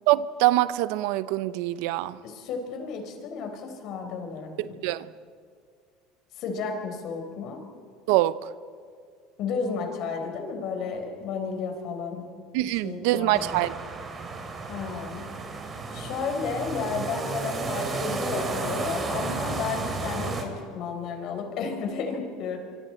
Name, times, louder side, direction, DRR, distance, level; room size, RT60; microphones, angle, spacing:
voice 1, 0.1-2.2 4.6-5.1 8.1-8.4 12.5-13.7, right 16 dB, 75° right, 0.6 m, -24 dB
voice 2, 2.2-4.8 6.4-7.6 9.4-12.2 12.6-13.6 14.7-15.3 15.9-22.6, left 5 dB, 55° left, 4.3 m, -32 dB
sound 1, 13.3-20.4, right 3 dB, 30° right, 3.2 m, -32 dB
25.0 x 25.0 x 4.4 m
supercardioid pair, 120°, 0 cm